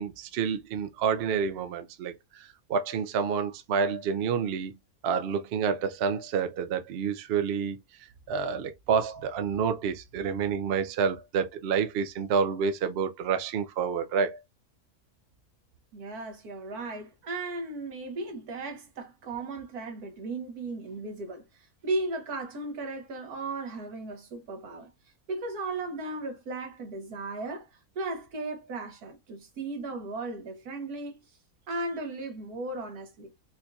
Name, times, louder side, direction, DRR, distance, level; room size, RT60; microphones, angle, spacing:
voice 1, 0.0-4.7 5.0-7.8 8.3-14.4, right 6 dB, 60° right, 0.6 m, -28 dB
voice 2, 15.9-21.4 21.8-24.9 25.3-27.7 28.0-31.2 31.7-33.3, right 2 dB, 85° right, 1.6 m, -36 dB
4.4 x 2.7 x 2.3 m
omnidirectional pair, 1.6 m